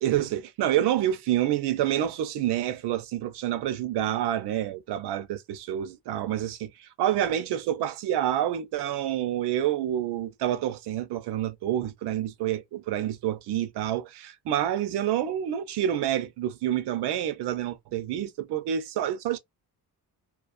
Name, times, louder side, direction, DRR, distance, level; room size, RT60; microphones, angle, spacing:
voice 1, 0.0-19.4, right 11 dB, 85° right, 0.6 m, -28 dB
2.4 x 2.3 x 2.3 m
cardioid pair, 165°, 39 cm